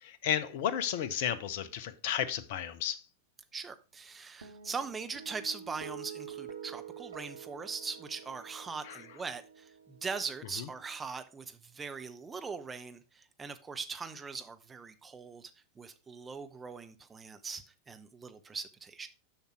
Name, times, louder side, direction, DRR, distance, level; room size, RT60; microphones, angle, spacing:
voice 1, 0.0-3.0 8.8-9.0 10.6-10.7, left 9 dB, 50° left, 0.8 m, -33 dB
voice 2, 3.5-15.5 15.8-19.1, right 5 dB, 15° right, 0.8 m, -41 dB
sound 1, 4.4-11.0, right 8 dB, 70° right, 1.3 m, -48 dB
7.0 x 5.8 x 4.5 m
figure-of-eight pair, 90°, 0 cm